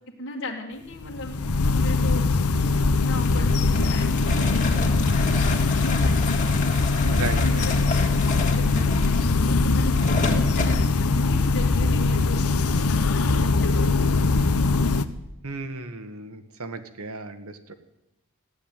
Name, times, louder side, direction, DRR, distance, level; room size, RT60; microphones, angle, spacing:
voice 1, 0.2-1.4 1.7-2.3 3.0-6.6 7.0-13.9, left 1 dB, 55° left, -2 dB, 2.0 m, -36 dB
sound 1, 0.9-15.0, left 3 dB, 90° left, 0.9 m, -21 dB
sound 2, 3.2-10.8, left 3 dB, 35° left, 2.3 m, -32 dB
voice 2, 7.1-7.6 15.4-17.7, right 3 dB, 80° right, 8 dB, 1.6 m, -35 dB
15.5 x 10.5 x 9.0 m, 0.94 s
head